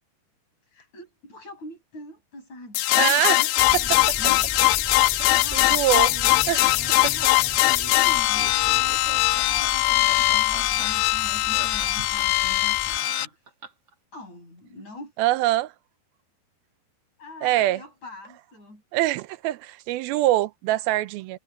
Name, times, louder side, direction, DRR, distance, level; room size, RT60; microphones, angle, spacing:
voice 1, 0.7-4.9 5.2-7.8 8.0-13.4 14.1-15.4 17.2-18.8, left 1 dB, 45° left, 8.6 m, -43 dB
sound 1, 2.8-13.3, left 18 dB, 80° left, 2.6 m, -21 dB
voice 2, 3.0-3.4 3.9-4.0 5.2-6.1 6.5-6.6 15.2-15.7 17.4-17.8 18.9-21.4, right 15 dB, 80° right, 2.4 m, -24 dB
sound 2, 3.6-13.0, equal, 5° left, 0.6 m, -41 dB
Laughter, 6.1-13.9, right 4 dB, 40° right, 3.5 m, -42 dB
omnidirectional pair, 4.6 m